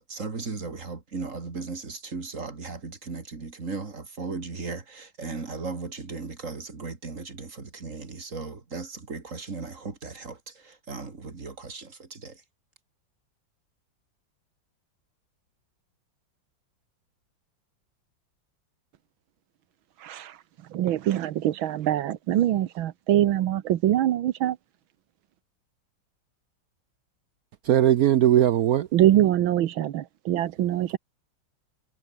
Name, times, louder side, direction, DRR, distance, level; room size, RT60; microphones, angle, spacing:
voice 1, 0.0-12.4, right 4 dB, 40° right, 3.0 m, -37 dB
voice 2, 20.0-20.4 20.7-24.6 28.9-31.0, right 12 dB, 85° right, 1.7 m, -24 dB
voice 3, 27.6-28.9, right 11 dB, 70° right, 0.9 m, -19 dB
omnidirectional pair, 2.1 m